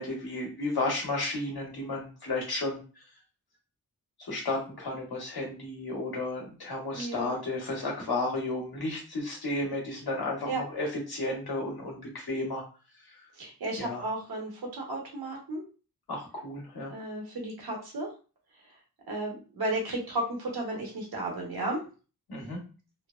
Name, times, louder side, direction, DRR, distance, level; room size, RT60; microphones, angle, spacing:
voice 1, 0.0-3.0 4.2-12.6 13.0-13.3 13.8-14.0 16.1-16.9 22.3-22.6, left 2 dB, 85° left, -1 dB, 1.1 m, -33 dB
voice 2, 7.0-7.3 10.5-10.6 13.3-15.6 16.9-18.1 19.1-21.8, right 2 dB, 80° right, 0 dB, 1.1 m, -33 dB
2.9 x 2.1 x 2.3 m, 0.35 s
wide cardioid pair, 65°, 37 cm